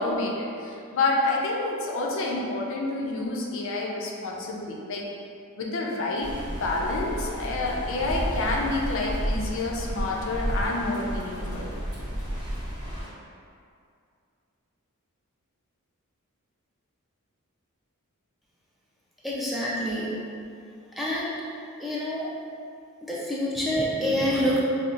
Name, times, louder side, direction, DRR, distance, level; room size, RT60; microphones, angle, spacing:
voice 1, 0.0-5.1 5.6-11.7, left 2 dB, 60° left, -2 dB, 0.5 m, -28 dB
sound 1, 6.2-13.1, equal, 20° right, 0.9 m, -32 dB
voice 2, 19.2-20.2 21.0-21.3 21.8-22.3 23.0-24.6, equal, ahead, -7 dB, 0.4 m, -27 dB
5.2 x 2.0 x 2.4 m, 2.4 s
head